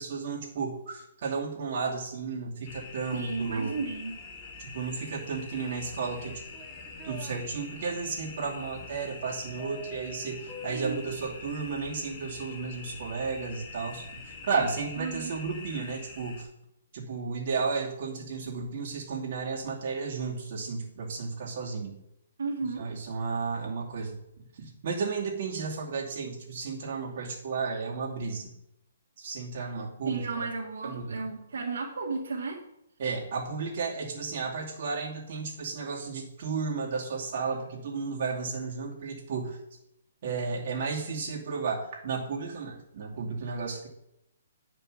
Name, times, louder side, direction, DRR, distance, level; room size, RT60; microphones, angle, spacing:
voice 1, 0.0-3.8 4.6-6.4 7.0-16.5 16.9-22.0 22.8-28.5 29.2-30.5 30.8-31.3 33.0-39.6 40.2-43.9, right 4 dB, 45° right, -3 dB, 2.5 m, -33 dB
sound 1, 2.6-16.4, left 4 dB, 25° left, 1.3 m, -45 dB
voice 2, 3.1-4.2 10.7-11.0 15.0-15.3 22.4-22.9 30.1-32.6, right 4 dB, 75° right, -2 dB, 1.9 m, -33 dB
sound 2, 6.1-7.4 9.6-11.2, left 1 dB, 15° right, 0.7 m, -46 dB
9.4 x 5.3 x 6.4 m, 0.81 s
hypercardioid pair, 165°, 0 cm